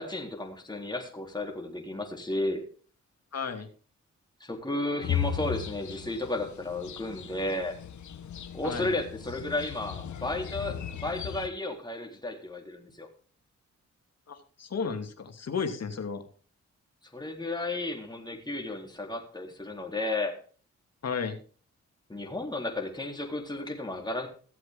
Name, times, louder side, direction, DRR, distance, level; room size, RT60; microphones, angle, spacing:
voice 1, 0.0-2.6 4.4-7.8 8.5-13.1 17.1-20.3 22.1-24.3, left 2 dB, 15° left, 1 dB, 3.8 m, -33 dB
voice 2, 3.3-3.7 8.6-8.9 14.3-16.2 21.0-21.4, left 6 dB, 60° left, 5 dB, 2.6 m, -33 dB
sound 1, 5.0-11.5, left 9 dB, 75° left, 1.4 m, -36 dB
16.5 x 7.8 x 3.7 m, 0.41 s
cardioid pair, 60°, 29 cm